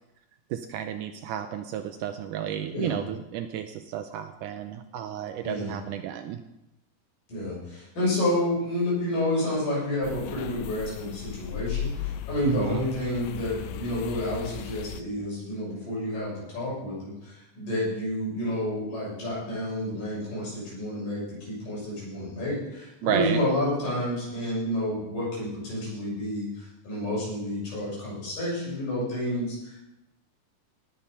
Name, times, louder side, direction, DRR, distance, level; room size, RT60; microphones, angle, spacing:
voice 1, 0.5-6.4 12.4-12.8 23.0-23.4, right 10 dB, 80° right, 8 dB, 2.0 m, -32 dB
voice 2, 7.3-29.9, left 1 dB, 65° left, -7 dB, 8.3 m, -30 dB
sound 1, 10.0-15.0, left 10 dB, 80° left, 2.2 m, -36 dB
18.5 x 7.5 x 5.6 m, 0.92 s
omnidirectional pair, 4.1 m